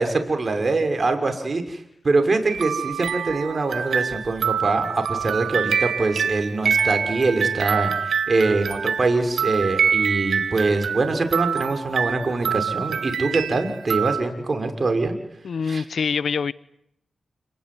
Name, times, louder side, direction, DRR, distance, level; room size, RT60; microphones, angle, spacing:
voice 1, 0.0-15.1 15.7-15.8, right 3 dB, 45° right, 6 dB, 6.4 m, -23 dB
sound 1, 2.5-14.2, right 7 dB, 80° right, 1.7 m, -25 dB
voice 2, 15.4-16.5, left 5 dB, 75° left, 17 dB, 1.0 m, -25 dB
30.0 x 19.5 x 9.8 m, 0.75 s
cardioid pair, 55°, 0 cm